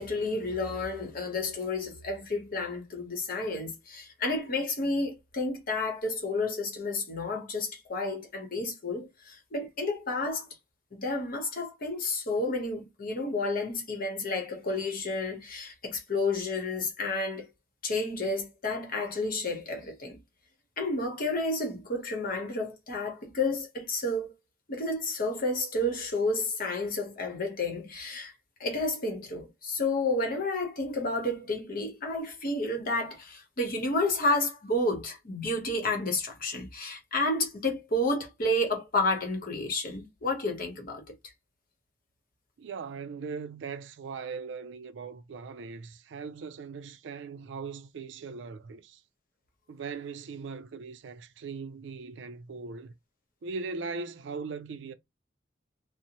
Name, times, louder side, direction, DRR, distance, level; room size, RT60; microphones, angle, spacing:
voice 1, 0.0-10.4 10.9-17.5 17.8-20.2 20.8-24.3 24.7-28.3 28.6-41.0, left 2 dB, 50° left, 0.9 m, -31 dB
voice 2, 42.6-49.0 49.7-52.9 53.4-54.9, right 4 dB, 70° right, 0.4 m, -39 dB
2.6 x 2.0 x 2.9 m
head